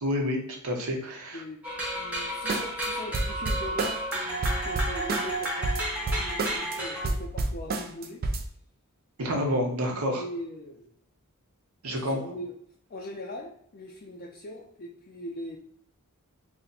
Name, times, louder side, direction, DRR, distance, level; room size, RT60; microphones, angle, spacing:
voice 1, 0.0-1.4 9.2-10.2 11.8-12.2, equal, 80° right, 1 dB, 0.8 m, -28 dB
sound 1, 1.6-7.1, right 1 dB, 5° right, 0.8 m, -32 dB
voice 2, 1.9-5.7 6.1-8.2 10.0-10.9 12.0-12.6 12.9-15.6, left 1 dB, 40° left, -2 dB, 0.4 m, -41 dB
sound 2, 2.5-2.9 3.1-4.1 4.4-6.8 7.0-8.5, right 2 dB, 45° right, 0.4 m, -29 dB
2.8 x 2.1 x 3.8 m, 0.68 s
head